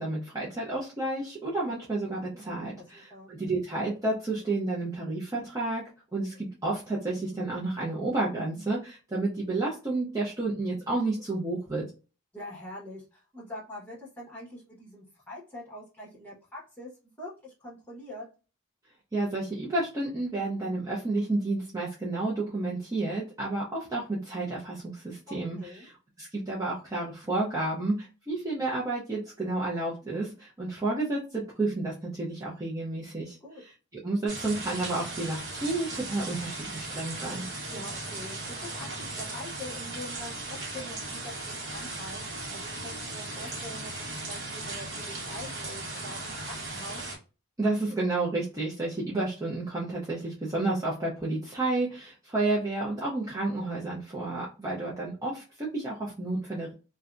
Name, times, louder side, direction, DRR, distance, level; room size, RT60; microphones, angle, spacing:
voice 1, 0.0-5.8 6.1-11.9 19.1-37.5 47.6-56.7, right 2 dB, 15° right, -6 dB, 0.5 m, -31 dB
voice 2, 2.8-3.3 12.3-16.9 17.2-18.3 25.3-25.9 33.4-33.6 37.7-47.1, left 1 dB, 10° left, -6 dB, 1.1 m, -44 dB
sound 1, 34.3-47.2, right 2 dB, 50° right, 0.9 m, -37 dB
2.6 x 2.2 x 2.4 m, 0.33 s
head